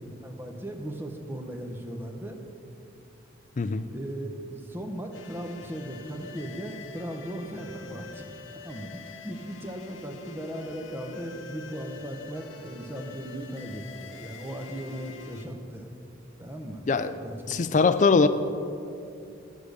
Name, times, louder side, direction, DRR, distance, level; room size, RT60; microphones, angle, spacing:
voice 1, 0.2-2.4 3.9-8.3 8.6-15.9 16.4-16.8 17.2-17.7, right 1 dB, 10° right, 4 dB, 0.7 m, -37 dB
sound 1, 5.1-15.5, left 4 dB, 80° left, 0.8 m, -45 dB
voice 2, 17.5-18.3, left 4 dB, 40° left, 11 dB, 0.4 m, -21 dB
12.5 x 4.8 x 6.5 m, 2.6 s
head